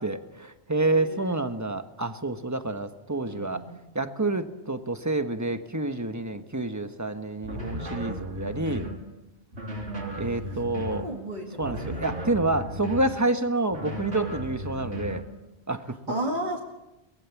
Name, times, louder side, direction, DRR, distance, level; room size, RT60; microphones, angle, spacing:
voice 1, 0.0-3.6 3.9-8.9 10.2-11.1 11.6-15.2 15.7-15.9, right 2 dB, 15° right, 8 dB, 1.3 m, -28 dB
voice 2, 0.9-1.3 3.3-3.8 10.4-10.6 11.0-12.0 16.1-16.6, right 1 dB, 45° right, 0 dB, 2.4 m, -34 dB
sound 1, 7.4-9.0 9.5-11.1 11.6-13.2 13.7-15.3, right 1 dB, 90° right, 3.9 m, -35 dB
23.5 x 20.5 x 7.3 m, 0.96 s
omnidirectional pair, 1.1 m